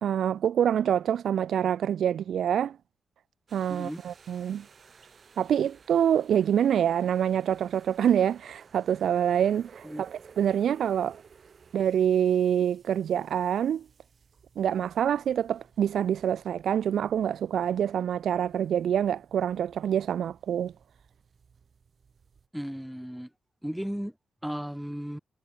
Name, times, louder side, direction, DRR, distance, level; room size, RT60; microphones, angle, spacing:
voice 1, 0.0-2.8 3.5-4.7 5.4-11.2 11.7-13.8 14.6-20.7, right 9 dB, 75° right, 1.0 m, -26 dB
sound 1, 3.5-22.5, right 6 dB, 40° right, 6.8 m, -56 dB
voice 2, 3.7-4.0 9.8-10.0 22.5-23.3 23.6-24.1 24.4-25.2, equal, ahead, 1.1 m, -35 dB
wide cardioid pair, 160°, 0 cm